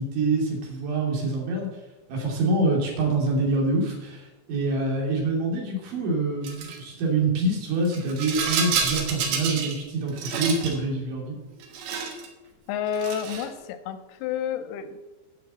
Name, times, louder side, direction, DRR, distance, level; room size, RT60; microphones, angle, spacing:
voice 1, 0.0-1.7 2.1-11.4, right 2 dB, 90° right, -1 dB, 5.0 m, -26 dB
Rattle, 6.4-6.8 7.8-9.8 10.1-10.8 11.6-12.3 12.9-13.5, right 6 dB, 70° right, 3.4 m, -29 dB
voice 2, 12.7-15.0, left 8 dB, 80° left, 10 dB, 2.3 m, -30 dB
11.0 x 5.8 x 7.8 m, 1.1 s
omnidirectional pair, 5.3 m